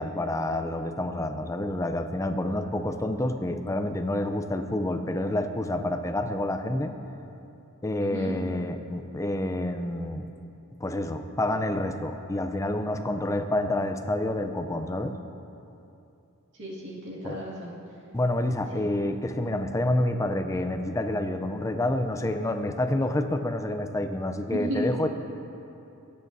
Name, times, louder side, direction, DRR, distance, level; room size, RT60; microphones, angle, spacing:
voice 1, 0.0-6.9 7.8-10.3 10.8-15.2 17.2-17.4 18.1-25.1, left 1 dB, 15° left, 7 dB, 0.5 m, -28 dB
voice 2, 8.0-8.4 16.6-17.7 18.7-18.9 24.5-24.9, equal, 55° right, -5 dB, 2.2 m, -34 dB
19.0 x 8.6 x 2.7 m, 2.8 s
head